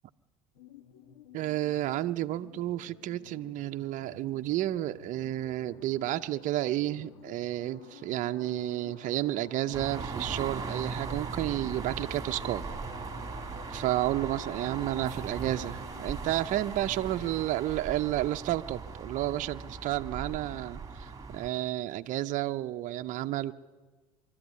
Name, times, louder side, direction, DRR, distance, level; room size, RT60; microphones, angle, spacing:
sound 1, 0.5-17.4, left 7 dB, 80° left, 1.5 m, -52 dB
voice 1, 1.3-12.7 13.7-23.5, right 14 dB, 50° right, 8 dB, 0.7 m, -31 dB
sound 2, 7.2-15.6, left 4 dB, 50° left, 2.6 m, -53 dB
sound 3, 9.7-21.5, right 4 dB, 20° right, 2.3 m, -39 dB
24.0 x 13.0 x 9.6 m, 1.3 s
hypercardioid pair, 85°, 16 cm